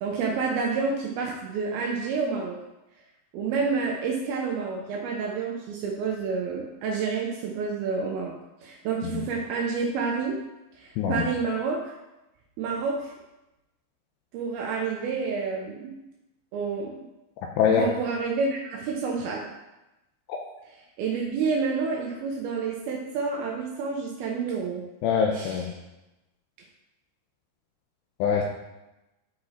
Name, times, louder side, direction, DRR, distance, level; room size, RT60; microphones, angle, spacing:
voice 1, 0.0-2.6 3.3-8.3 8.6-10.4 10.7-11.9 12.6-13.1 14.3-16.0 16.5-16.9 17.7-19.4 21.0-24.8 25.3-25.7, right 5 dB, 90° right, -1 dB, 2.1 m, -29 dB
voice 2, 17.6-17.9 20.3-20.4 25.0-25.7 28.2-28.4, left 7 dB, 85° left, 1 dB, 2.5 m, -23 dB
11.0 x 4.8 x 4.2 m, 0.98 s
omnidirectional pair, 5.5 m